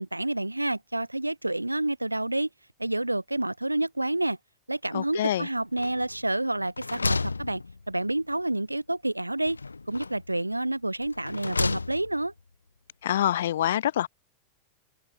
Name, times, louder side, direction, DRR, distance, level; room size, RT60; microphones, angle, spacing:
voice 1, 0.0-2.5 2.8-4.4 4.7-7.6 7.9-9.6 9.9-12.3, right 1 dB, 85° right, 0.9 m, -29 dB
voice 2, 4.9-5.5 13.0-14.1, left 12 dB, 60° left, 0.5 m, -26 dB
sound 1, 5.8-6.3 6.6-8.2 9.5-10.3 11.0-12.3, left 3 dB, 80° left, 1.2 m, -32 dB
figure-of-eight pair, 90°, 0 cm